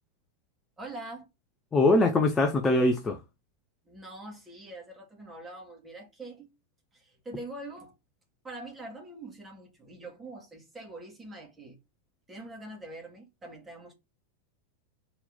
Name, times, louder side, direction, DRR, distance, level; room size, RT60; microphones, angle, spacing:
voice 1, 0.8-1.3 3.8-6.5 6.9-7.9 8.4-11.8 12.3-13.9, right 2 dB, 15° right, 2.6 m, -44 dB
voice 2, 1.7-3.2, left 2 dB, 15° left, 0.9 m, -22 dB
4.4 x 4.3 x 5.2 m
figure-of-eight pair, 90°, 0 cm